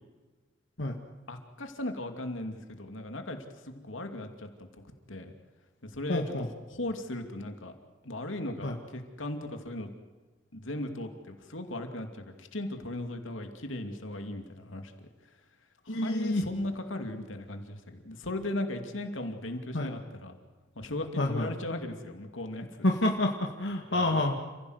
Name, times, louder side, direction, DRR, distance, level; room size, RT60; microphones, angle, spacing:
voice 1, 1.3-3.4 3.6-4.7 5.1-5.3 5.8-6.4 6.7-7.7 8.0-9.9 10.5-14.9 15.9-20.3 20.8-22.7 23.9-24.2, left 1 dB, 85° left, 5 dB, 2.6 m, -37 dB
voice 2, 6.1-6.5 8.6-8.8 15.9-16.4 19.7-19.9 21.2-21.5 22.8-24.4, left 1 dB, 70° left, 1 dB, 2.0 m, -28 dB
29.5 x 16.0 x 8.1 m, 1.3 s
head